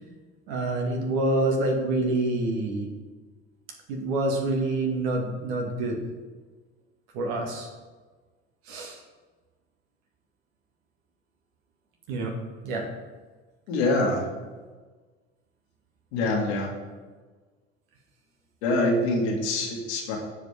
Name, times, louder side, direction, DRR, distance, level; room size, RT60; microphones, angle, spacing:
voice 1, 0.5-2.9 3.9-6.0 7.1-7.7 8.7-9.0 12.1-12.4 12.6-12.9, right 2 dB, 65° right, 2 dB, 2.0 m, -27 dB
voice 2, 13.7-14.2 16.1-16.7 18.6-20.2, left 2 dB, 70° left, -1 dB, 2.1 m, -25 dB
15.0 x 5.0 x 3.6 m, 1.4 s
hypercardioid pair, 60°, 34 cm